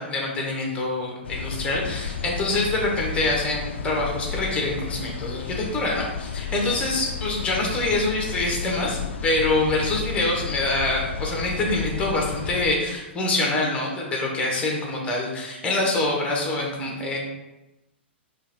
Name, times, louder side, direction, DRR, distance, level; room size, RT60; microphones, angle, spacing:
voice 1, 0.0-17.2, left 2 dB, 15° left, -1 dB, 1.2 m, -25 dB
sound 1, 1.2-12.7, left 6 dB, 65° left, 0.4 m, -33 dB
5.3 x 2.5 x 3.4 m, 0.99 s
figure-of-eight pair, 105°, 6 cm